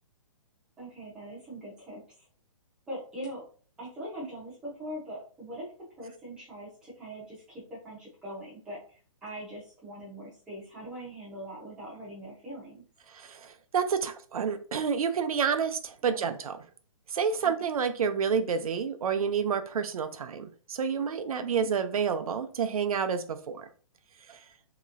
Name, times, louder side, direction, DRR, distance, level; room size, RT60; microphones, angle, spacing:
voice 1, 0.8-2.3 2.9-3.4 3.8-5.7 6.0-12.8 16.0-16.3 17.4-17.5 21.3-21.7, right 1 dB, 5° right, 0.6 m, -42 dB
voice 2, 13.1-16.6 17.1-23.7 24.3-24.4, right 6 dB, 80° right, 0.6 m, -29 dB
3.0 x 2.9 x 2.5 m
hypercardioid pair, 175°, 18 cm